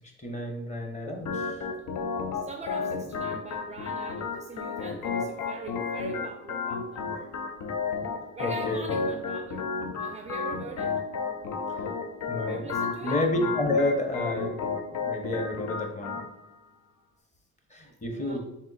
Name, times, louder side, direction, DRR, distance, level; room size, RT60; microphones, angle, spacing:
voice 1, 0.2-1.6 8.4-8.9 11.8-11.9 12.3-12.7 13.0-14.6 15.0-16.2 17.7-18.4, left 1 dB, 25° left, 2 dB, 1.0 m, -30 dB
Organ, 1.2-16.3, left 5 dB, 75° left, 0.6 m, -32 dB
voice 2, 2.3-7.4 8.3-9.7 10.0-11.0 12.4-13.2 16.8-17.1 18.1-18.4, right 4 dB, 25° right, 4 dB, 0.4 m, -42 dB
3.6 x 2.6 x 4.0 m, 0.87 s
cardioid pair, 90°, 30 cm